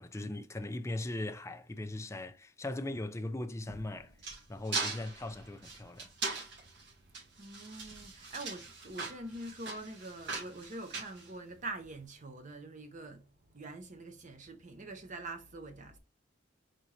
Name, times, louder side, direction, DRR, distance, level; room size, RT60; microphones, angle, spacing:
voice 1, 0.0-4.1 4.5-6.1, left 1 dB, 15° left, 0.4 m, -39 dB
sound 1, 3.6-11.9, right 3 dB, 65° right, 2.1 m, -40 dB
voice 2, 7.1-16.0, right 2 dB, 40° right, 0.7 m, -45 dB
4.1 x 3.6 x 3.2 m
head